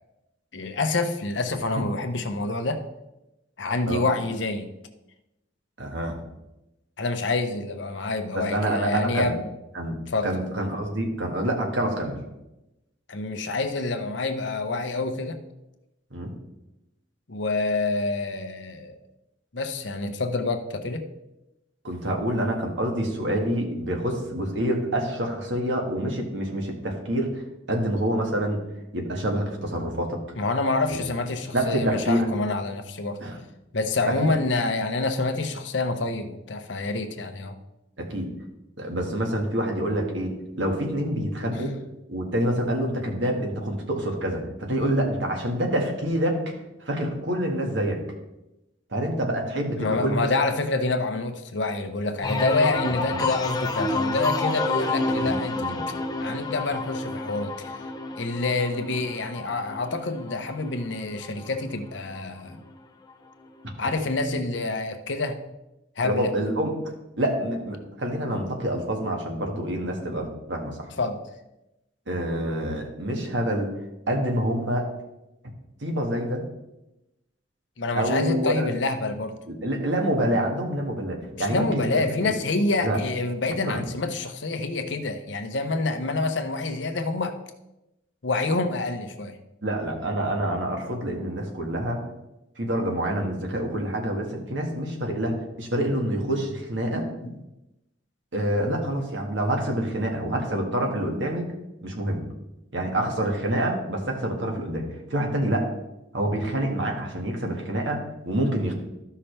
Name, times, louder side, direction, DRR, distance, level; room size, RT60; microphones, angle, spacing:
voice 1, 0.5-2.8 3.6-4.7 7.0-9.4 10.1-10.3 13.1-15.4 17.3-18.9 19.5-21.1 30.4-33.2 33.7-37.6 49.8-55.8 56.2-57.7 58.1-62.6 63.8-65.4 66.0-66.3 71.0-71.2 77.8-79.3 81.3-87.3 88.2-89.4 97.2-97.4 107.4-107.5, left 3 dB, 75° left, 7 dB, 0.9 m, -27 dB
voice 2, 5.8-6.2 8.3-9.3 9.8-12.2 16.1-16.3 21.8-27.4 27.7-28.6 28.9-30.2 30.9-31.0 31.5-32.3 33.2-33.4 34.1-34.3 38.0-38.3 38.8-41.7 42.1-46.4 46.8-48.0 48.9-50.3 52.8-53.2 55.2-55.8 63.8-63.9 66.0-66.8 67.2-70.9 72.1-73.7 74.1-74.9 75.8-76.5 77.9-78.7 79.5-82.3 82.8-83.0 83.7-83.8 89.6-92.0 92.6-97.1 98.3-101.5 101.8-102.2 102.7-105.7 106.1-108.7, right 1 dB, 75° right, 1 dB, 1.8 m, -27 dB
sound 1, 52.2-61.8 62.2-62.7, left 2 dB, 20° left, 0.7 m, -29 dB
13.5 x 5.7 x 3.3 m, 0.94 s
head